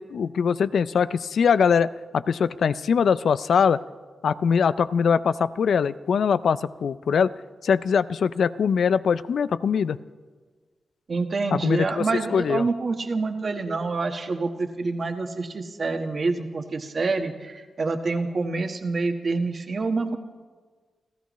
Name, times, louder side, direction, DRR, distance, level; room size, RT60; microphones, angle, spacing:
voice 1, 0.0-3.8 4.2-7.3 7.6-10.0 11.5-12.1 12.3-12.7, left 6 dB, 80° left, 16 dB, 0.4 m, -22 dB
voice 2, 11.1-20.2, right 3 dB, 50° right, 6 dB, 1.4 m, -27 dB
29.0 x 14.5 x 3.1 m, 1.5 s
cardioid pair, 80°, 0 cm